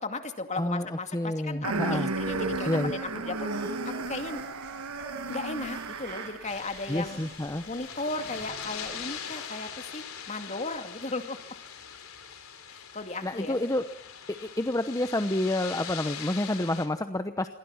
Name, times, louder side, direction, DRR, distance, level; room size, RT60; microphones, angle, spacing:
voice 1, 0.0-4.4 5.3-7.2 7.7-11.4 12.7-13.6, left 3 dB, 35° left, 7 dB, 2.4 m, -36 dB
voice 2, 0.6-2.1 2.7-3.0 6.9-7.6 13.2-13.9 14.3-17.5, left 1 dB, 15° left, 9 dB, 0.9 m, -29 dB
sound 1, 1.6-6.5, right 3 dB, 85° right, 1.5 m, -34 dB
sound 2, 2.0-9.4, right 2 dB, 55° right, 6.8 m, -43 dB
sound 3, 6.4-16.9, left 7 dB, 70° left, 3.7 m, -42 dB
27.5 x 23.0 x 5.9 m, 0.75 s
head